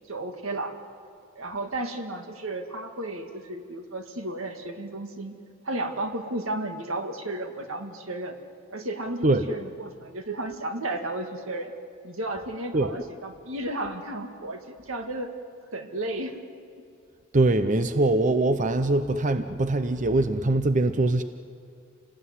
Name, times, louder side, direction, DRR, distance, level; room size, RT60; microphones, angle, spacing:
voice 1, 0.1-0.7 1.4-5.3 5.6-8.4 8.7-11.7 12.0-15.3 15.7-16.4, right 2 dB, 80° right, 5 dB, 2.2 m, -33 dB
voice 2, 17.3-21.2, right 2 dB, 40° right, 10 dB, 0.7 m, -22 dB
28.0 x 18.5 x 9.7 m, 2.5 s
head